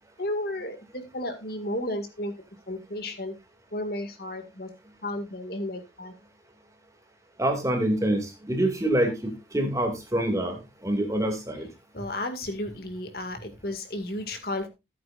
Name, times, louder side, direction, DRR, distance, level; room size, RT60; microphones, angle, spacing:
voice 1, 0.2-2.3 2.7-3.3 3.7-4.7 5.0-6.1 11.9-14.7, left 1 dB, 55° left, 7 dB, 2.0 m, -33 dB
voice 2, 7.4-11.7, right 1 dB, 15° right, 4 dB, 2.2 m, -26 dB
15.0 x 8.7 x 2.5 m, 0.24 s
head